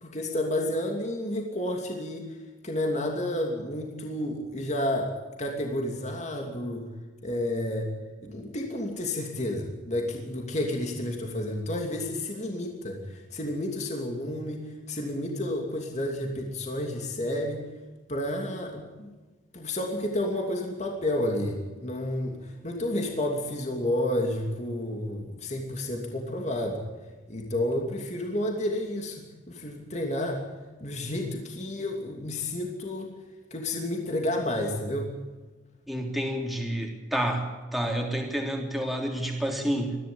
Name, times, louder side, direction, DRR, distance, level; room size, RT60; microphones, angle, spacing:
voice 1, 0.0-2.4 2.6-5.1 5.4-6.9 7.2-7.9 8.2-17.7 18.1-19.1 19.5-26.8 27.3-29.2 29.5-30.4 30.8-33.1 33.5-35.1, left 1 dB, 35° left, 1 dB, 2.9 m, -30 dB
voice 2, 35.9-37.5 37.7-40.0, equal, ahead, 0 dB, 3.5 m, -29 dB
22.5 x 15.0 x 8.8 m, 1.3 s
head